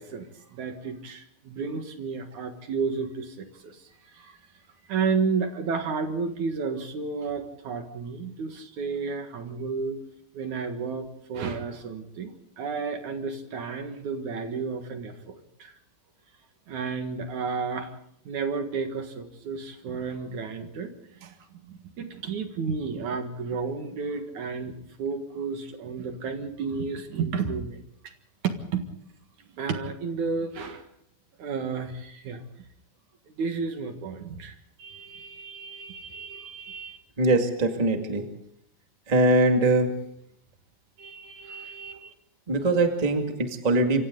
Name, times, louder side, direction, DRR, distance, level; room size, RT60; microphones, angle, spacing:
voice 1, 0.0-4.4 4.9-10.0 10.3-15.7 16.7-17.9 18.2-20.9 21.2-21.3 21.6-27.8 28.4-28.8 29.4-30.8 31.4-32.4 33.4-37.0 41.0-42.1, right 5 dB, 60° right, 6 dB, 2.9 m, -32 dB
voice 2, 37.2-38.3 39.1-39.9 42.5-44.0, right 2 dB, 15° right, 4 dB, 1.4 m, -22 dB
26.5 x 25.5 x 3.9 m, 0.72 s
omnidirectional pair, 4.3 m